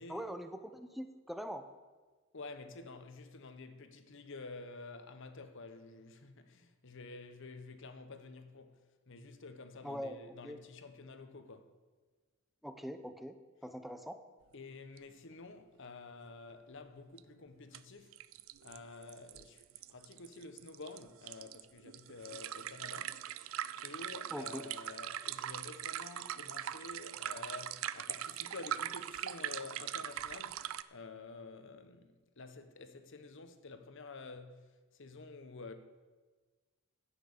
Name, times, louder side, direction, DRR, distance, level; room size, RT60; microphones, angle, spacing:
voice 1, 0.1-1.7 9.8-10.2 10.4-10.6 12.6-13.4 13.6-14.2 24.3-24.6, equal, ahead, 0.7 m, -42 dB
voice 2, 2.3-8.8 9.1-11.7 14.5-18.2 18.6-19.6 19.9-23.5 23.8-34.7 34.9-35.7, left 3 dB, 65° left, 1.0 m, -50 dB
sound 1, 15.0-15.1 15.3-15.4 17.2-17.3 17.7-17.8 18.1-30.8, right 11 dB, 70° right, 0.4 m, -41 dB
10.5 x 9.2 x 6.7 m
head